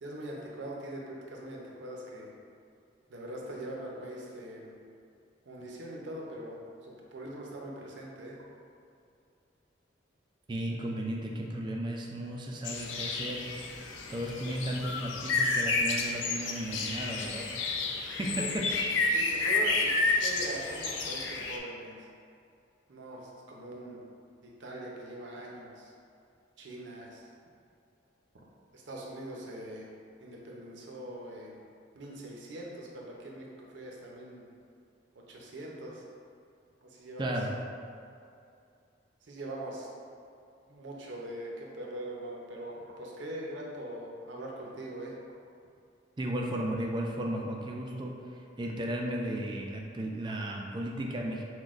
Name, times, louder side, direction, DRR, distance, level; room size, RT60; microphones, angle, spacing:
voice 1, 0.0-2.3 3.1-4.7 5.5-8.4 18.3-18.5 19.1-19.9 20.2-21.9 22.9-24.0 24.4-25.9 26.6-27.2 28.7-29.9 30.2-31.6 31.9-33.5 33.7-34.5 35.3-36.0 36.8-37.3 39.3-39.9 40.7-45.1, right 1 dB, 65° right, -2 dB, 0.6 m, -42 dB
voice 2, 10.5-13.5 14.1-17.5 18.2-18.7 37.2-37.5 46.2-48.2 48.6-51.4, right 1 dB, 25° right, 0 dB, 0.3 m, -34 dB
sound 1, 12.6-21.6, left 3 dB, 65° left, 0.4 m, -30 dB
5.9 x 2.2 x 2.4 m, 2.5 s
head